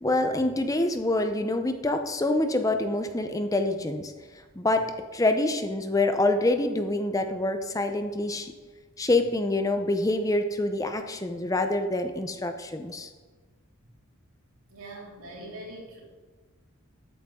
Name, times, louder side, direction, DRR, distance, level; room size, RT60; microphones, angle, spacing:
voice 1, 0.0-4.1 4.6-4.9 5.1-8.5 9.0-13.1, left 2 dB, 15° left, 7 dB, 0.6 m, -26 dB
voice 2, 14.7-16.0, right 1 dB, 80° right, -3 dB, 3.6 m, -42 dB
13.0 x 8.9 x 3.6 m, 1.4 s
head